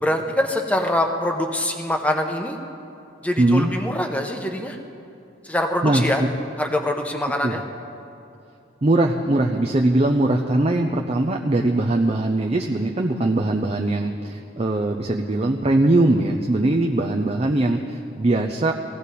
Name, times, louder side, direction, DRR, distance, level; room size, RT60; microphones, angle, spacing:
voice 1, 0.0-2.6 3.2-4.8 5.4-6.2 6.6-7.6, left 1 dB, 5° left, 3 dB, 0.9 m, -24 dB
voice 2, 3.4-3.7 5.8-6.0 7.4-7.6 8.8-18.7, right 2 dB, 35° right, 2 dB, 0.6 m, -21 dB
18.5 x 16.0 x 4.2 m, 2.6 s
head